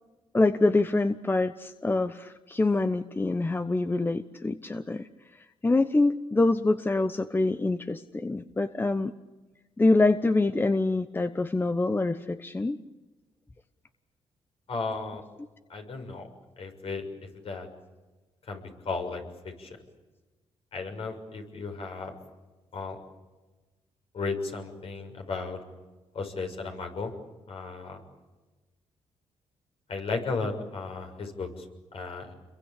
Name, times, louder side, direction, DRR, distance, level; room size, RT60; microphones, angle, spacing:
voice 1, 0.3-5.1 5.6-9.1 9.8-12.8, left 2 dB, 20° left, 10 dB, 1.0 m, -25 dB
voice 2, 14.7-15.2 15.7-16.3 16.6-17.0 17.4-17.7 18.5-19.8 20.7-22.1 22.7-23.0 24.1-25.6 26.1-27.1 27.5-28.0 29.9-31.7 31.9-32.3, left 4 dB, 55° left, 4 dB, 6.6 m, -34 dB
29.0 x 23.0 x 8.7 m, 1.2 s
cardioid pair, 95°, 11 cm